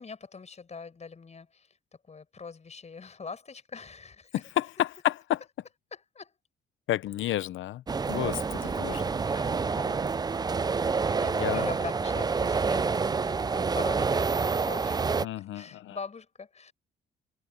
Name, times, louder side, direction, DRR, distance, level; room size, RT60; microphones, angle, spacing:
voice 1, 0.0-1.8 2.1-4.4 5.9-6.4 8.6-10.0 11.2-16.7, left 5 dB, 35° left, 5.2 m, -43 dB
voice 2, 4.6-5.4 6.9-9.0 11.4-11.7 15.2-16.0, left 13 dB, 75° left, 0.9 m, -31 dB
sound 1, 7.9-15.2, right 5 dB, 20° right, 0.4 m, -28 dB
cardioid pair, 90°, 20 cm